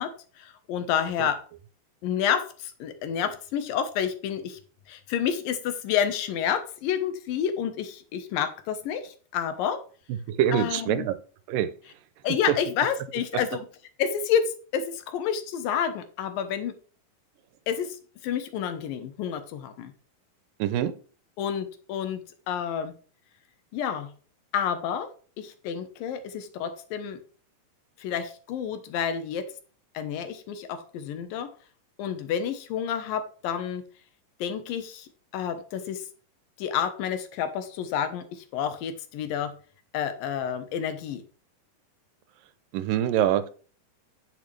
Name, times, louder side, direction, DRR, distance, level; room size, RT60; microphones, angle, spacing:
voice 1, 0.0-1.4 2.0-4.6 4.9-9.8 10.5-11.1 12.2-13.7 14.0-16.8 17.7-18.0 18.2-19.9 21.4-22.2 22.5-22.9 23.7-24.1 24.5-25.1 25.4-27.2 28.0-29.5 29.9-31.5 32.0-33.8 34.4-36.0 36.6-39.5 39.9-41.2, left 8 dB, 85° left, 10 dB, 2.8 m, -29 dB
voice 2, 10.4-11.1 11.5-11.7 20.6-20.9 42.7-43.5, right 10 dB, 80° right, 13 dB, 2.4 m, -24 dB
9.5 x 7.9 x 3.3 m, 0.40 s
omnidirectional pair, 3.9 m